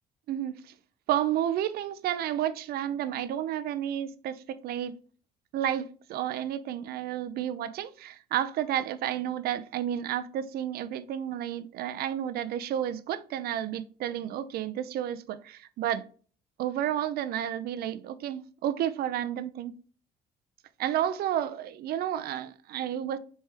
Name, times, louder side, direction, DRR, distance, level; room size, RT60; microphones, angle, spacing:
voice 1, 0.3-0.7 1.1-4.9 5.5-16.0 16.6-19.8 20.8-23.2, right 11 dB, 65° right, 0.5 m, -31 dB
4.2 x 3.3 x 3.3 m
cardioid pair, 110°, 17 cm